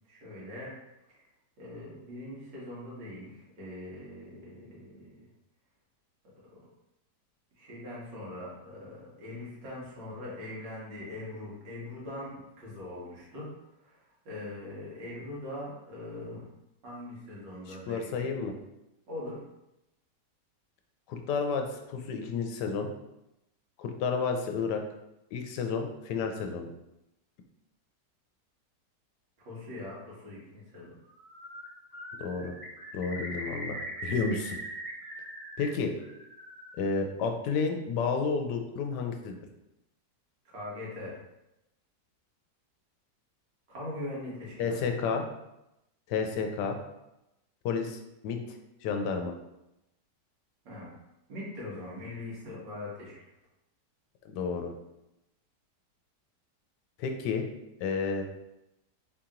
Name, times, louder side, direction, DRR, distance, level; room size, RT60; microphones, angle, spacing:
voice 1, 0.1-0.7 1.1-1.2 1.6-5.1 7.6-13.5 13.8-14.0 14.2-16.5 16.8-18.3 19.1-19.4 29.4-31.0 40.5-41.1 43.7-44.8 50.6-50.9 51.3-53.1, left 1 dB, 90° right, -6 dB, 2.2 m, -41 dB
voice 2, 17.7-18.5 21.1-22.9 23.8-24.8 25.3-26.7 32.2-32.5 32.9-34.6 35.6-35.9 36.8-39.4 44.6-45.3 46.1-46.8 47.6-48.6 48.8-49.3 54.3-54.7 57.0-57.5 57.8-58.2, left 5 dB, 80° left, 5 dB, 1.2 m, -31 dB
Bird, 31.1-31.7 31.9-35.6 36.0-36.8, right 1 dB, 5° left, 1.2 m, -41 dB
4.2 x 2.9 x 3.7 m, 0.90 s
omnidirectional pair, 1.9 m